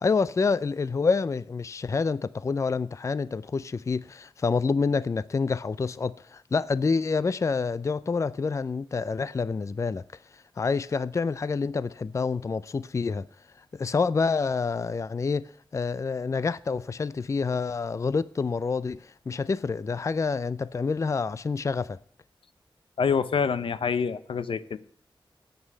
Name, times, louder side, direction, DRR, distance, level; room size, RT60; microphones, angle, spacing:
voice 1, 0.0-10.0 10.3-13.3 13.7-22.0, left 4 dB, 35° left, 0.4 m, -27 dB
voice 2, 23.0-24.8, left 6 dB, 80° left, 0.7 m, -26 dB
9.6 x 8.2 x 7.5 m
wide cardioid pair, 105°, 9 cm